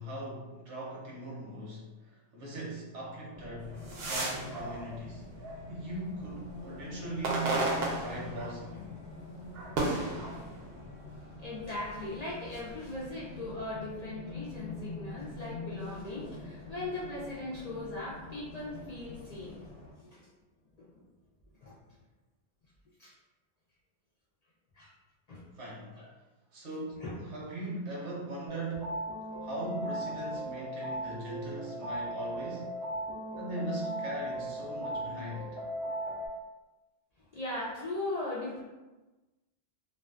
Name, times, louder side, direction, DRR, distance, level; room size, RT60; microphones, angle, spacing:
voice 1, 0.0-5.3 5.7-8.9 25.5-26.0 26.5-29.1 29.4-32.8 33.4-35.6, right 2 dB, 85° right, -4 dB, 1.0 m, -40 dB
Race car auto racing, 3.3-19.9, left 3 dB, 70° left, 0.8 m, -45 dB
sound 1, 3.6-6.0 6.5-8.8 9.1-11.0 11.7-12.6, right 2 dB, 65° right, 0.7 m, -35 dB
voice 2, 11.4-19.6 20.0-20.3 20.8-21.0 21.6-21.8 23.0-23.1 24.7-24.9 25.3-25.4 26.0-26.1 27.0-27.1 37.3-38.6, left 2 dB, 50° left, -7 dB, 0.5 m, -39 dB
sound 2, 28.5-36.3, right 1 dB, 35° right, 0.5 m, -37 dB
2.4 x 2.3 x 2.3 m, 1.1 s
omnidirectional pair, 1.1 m